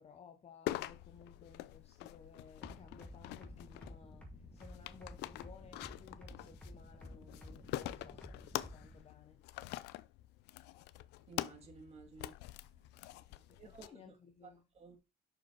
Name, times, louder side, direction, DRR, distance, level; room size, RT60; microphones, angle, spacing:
voice 1, 0.0-9.6 13.3-14.6, left 6 dB, 40° left, 0.9 m, -58 dB
sound 1, 0.7-13.9, left 16 dB, 85° left, 0.5 m, -46 dB
sound 2, 2.6-9.0, left 1 dB, 5° left, 2.0 m, -52 dB
voice 2, 11.3-12.4 12.8-13.1 13.6-14.1 14.4-14.5 14.7-15.0, right 5 dB, 40° right, 2.4 m, -55 dB
6.2 x 5.0 x 4.5 m
cardioid pair, 110°, 17 cm